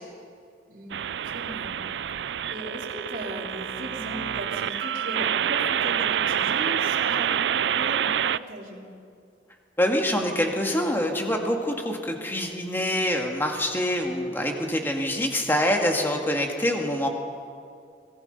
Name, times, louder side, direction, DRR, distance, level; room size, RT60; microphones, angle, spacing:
sound 1, 0.9-8.4, right 9 dB, 70° right, 0.4 m, -27 dB
voice 1, 1.2-1.8 2.5-8.8, equal, 50° right, -2 dB, 3.5 m, -37 dB
voice 2, 9.8-17.1, left 1 dB, 10° left, 2 dB, 2.1 m, -25 dB
25.0 x 19.5 x 5.5 m, 2.3 s
head